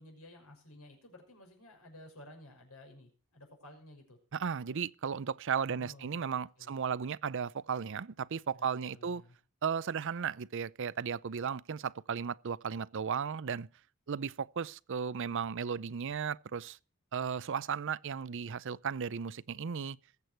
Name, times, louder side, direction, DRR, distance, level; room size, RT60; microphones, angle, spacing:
voice 1, 0.0-4.2 5.7-6.7 8.5-9.4, left 1 dB, 80° left, 5.9 m, -54 dB
voice 2, 4.3-9.2 9.6-13.7 14.1-16.8 17.1-20.0, right 6 dB, 60° right, 0.5 m, -35 dB
20.5 x 8.4 x 4.4 m
head